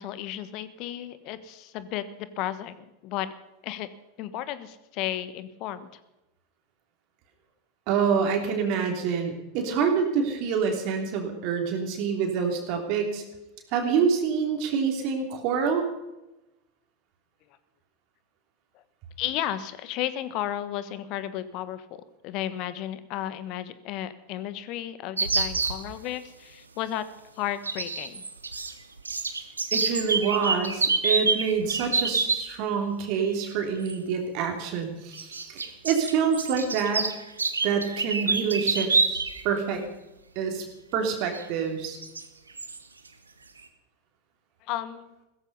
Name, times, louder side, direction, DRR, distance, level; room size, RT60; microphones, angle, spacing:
voice 1, 0.0-3.3 3.6-3.9 4.2-6.0 19.2-21.9 22.2-27.1 27.3-28.2 44.6-45.1, left 12 dB, 45° left, 14 dB, 1.3 m, -33 dB
voice 2, 7.9-13.2 13.7-15.9 29.7-37.0 37.6-39.8 40.3-40.6 40.9-42.0, right 6 dB, 50° right, 3 dB, 3.2 m, -27 dB
sound 1, 25.2-25.8 27.6-28.7 29.0-32.4 33.8-33.9 35.1-39.4 39.7-39.8 41.3-41.4 42.0-42.2 42.6-42.8, right 4 dB, 85° right, 1.3 m, -27 dB
16.0 x 14.5 x 5.5 m, 0.96 s
figure-of-eight pair, 85°, 0 cm